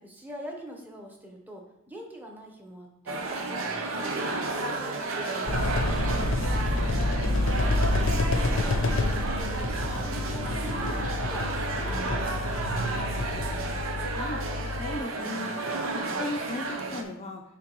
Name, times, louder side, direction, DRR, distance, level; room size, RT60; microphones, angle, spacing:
voice 1, 0.0-7.3 7.7-10.9 11.2-13.5, equal, 10° right, 0 dB, 0.9 m, -44 dB
sound 1, 3.1-17.0, right 3 dB, 90° right, 0.7 m, -32 dB
sound 2, 5.5-15.0, left 2 dB, 75° left, 0.6 m, -28 dB
sound 3, 5.8-6.8 7.6-13.6, right 6 dB, 60° right, 0.3 m, -41 dB
voice 2, 14.1-14.4 14.7-15.5 15.9-17.4, left 1 dB, 30° left, 2 dB, 0.5 m, -36 dB
9.5 x 3.6 x 3.0 m, 0.83 s
head